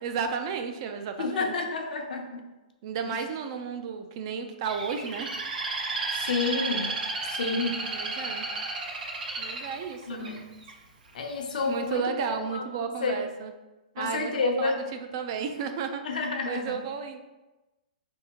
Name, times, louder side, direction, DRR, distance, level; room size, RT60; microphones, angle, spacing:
voice 1, 0.0-1.5 2.8-5.3 7.8-8.5 9.4-10.3 11.6-13.5 14.0-16.0 16.5-17.2, right 6 dB, 35° right, 6 dB, 0.3 m, -33 dB
voice 2, 1.2-2.4 3.1-3.2 6.1-6.9 7.3-7.9 10.1-10.4 11.1-13.2 14.0-14.8 16.0-16.8, left 4 dB, 70° left, 3 dB, 0.7 m, -30 dB
Bird, 4.6-10.7 11.3-11.7, right 3 dB, 80° right, 0.8 m, -33 dB
4.4 x 3.5 x 2.8 m, 1.1 s
hypercardioid pair, 165°, 5 cm